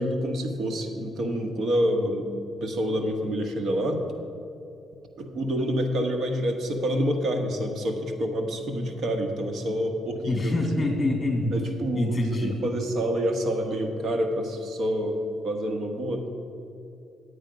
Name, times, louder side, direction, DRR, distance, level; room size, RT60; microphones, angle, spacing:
voice 1, 0.0-2.3 2.6-4.0 5.2-10.9 11.5-15.2 15.4-16.2, equal, 60° right, 4 dB, 1.3 m, -27 dB
voice 2, 10.3-11.5 11.9-12.6, left 2 dB, 20° left, 2 dB, 2.1 m, -25 dB
10.5 x 8.3 x 5.2 m, 2.7 s
cardioid pair, 90°, 0 cm